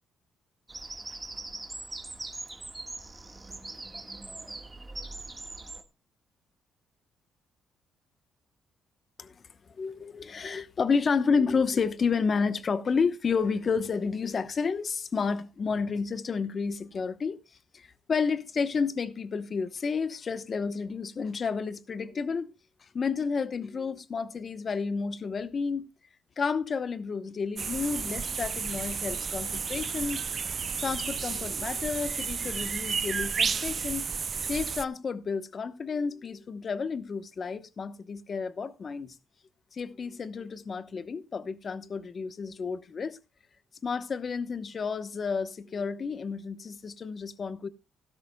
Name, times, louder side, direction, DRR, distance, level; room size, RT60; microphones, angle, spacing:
Bird vocalization bird call bird song, 0.7-5.8, right 2 dB, 20° right, 1.6 m, -41 dB
voice 1, 9.7-17.4 17.7-22.5 22.9-25.9 26.4-30.3 30.8-34.1 34.4-39.1 39.7-43.2 43.8-47.7, left 5 dB, 45° left, 1.0 m, -31 dB
sound 1, 27.6-34.8, right 6 dB, 45° right, 0.5 m, -32 dB
16.0 x 13.0 x 2.3 m
cardioid pair, 90°, 0 cm